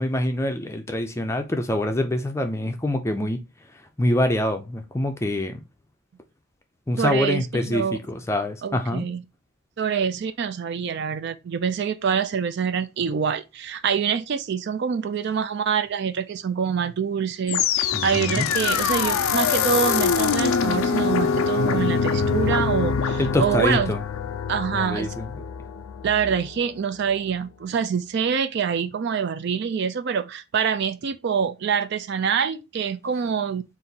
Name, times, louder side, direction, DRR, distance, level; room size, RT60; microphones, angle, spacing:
voice 1, 0.0-3.4 4.0-5.6 6.9-9.1 17.9-18.5 23.2-24.0 24.7-25.3, left 1 dB, 15° left, 0.4 m, -25 dB
voice 2, 7.0-8.0 8.6-9.2 9.8-23.9 24.5-25.1 26.0-33.6, right 7 dB, 50° right, 0.3 m, -25 dB
sound 1, 17.5-26.6, left 6 dB, 75° left, 0.4 m, -24 dB
4.0 x 2.6 x 3.9 m
head